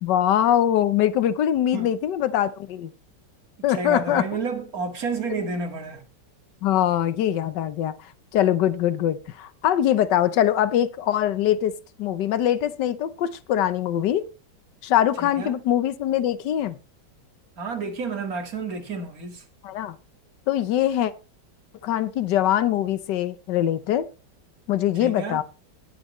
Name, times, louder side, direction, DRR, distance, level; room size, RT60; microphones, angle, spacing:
voice 1, 0.0-2.9 3.6-4.3 6.6-7.9 8.3-11.7 12.0-14.3 14.8-16.8 19.6-20.0 20.5-21.1 21.8-24.1 24.7-25.4, left 11 dB, 75° left, 1.5 m, -22 dB
voice 2, 3.7-6.0 15.2-15.5 17.6-19.4 25.0-25.4, right 4 dB, 55° right, 2.3 m, -30 dB
19.5 x 7.7 x 3.1 m
omnidirectional pair, 1.9 m